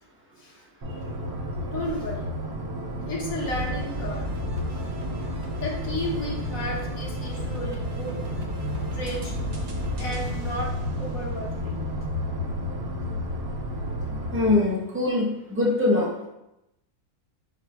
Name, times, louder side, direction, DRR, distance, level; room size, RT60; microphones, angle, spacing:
sound 1, 0.8-14.5, left 1 dB, 85° right, 1.3 m, -32 dB
voice 1, 1.7-2.3 3.1-4.3 4.7-4.8 5.6-8.2 8.9-9.3 10.0-10.7 11.0-11.8, left 1 dB, 70° left, -2 dB, 1.2 m, -33 dB
sound 2, 3.4-11.8, equal, 55° right, 0.6 m, -36 dB
voice 2, 14.3-16.3, left 2 dB, 10° right, -5 dB, 0.6 m, -23 dB
4.9 x 4.3 x 2.2 m, 0.89 s
omnidirectional pair, 1.6 m